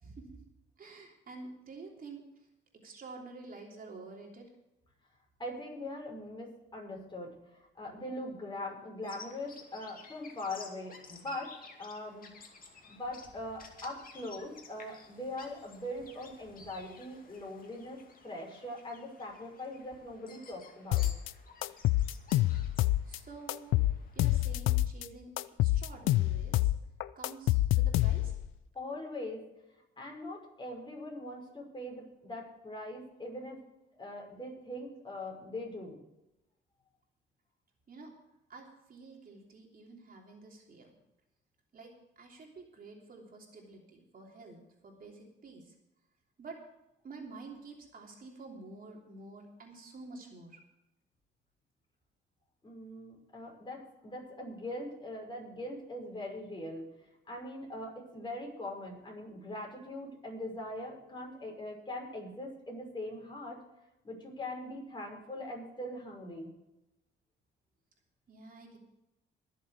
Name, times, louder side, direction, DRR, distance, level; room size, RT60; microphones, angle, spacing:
voice 1, 0.0-0.4 0.8-2.2 2.8-4.5 23.0-23.8 24.1-25.3 25.6-26.7 27.1-28.3 37.9-38.1 38.5-40.9 41.7-44.6 44.8-45.7 46.4-46.6 47.0-50.6 68.3-68.8, right 3 dB, 45° right, 0 dB, 3.2 m, -49 dB
voice 2, 5.4-11.5 11.8-12.3 12.8-21.1 28.7-29.4 30.0-33.6 34.0-36.0 52.6-56.9 57.3-63.6 64.0-66.5, left 1 dB, 25° left, -1 dB, 6.0 m, -41 dB
Bird vocalization bird call bird song, 9.0-24.2, left 4 dB, 45° left, 2.4 m, -54 dB
sound 1, 20.9-21.3 21.6-23.2 23.5-25.1 25.4-28.5, left 15 dB, 85° left, 0.5 m, -27 dB
21.5 x 7.3 x 4.9 m, 0.90 s
cardioid pair, 90°, 20 cm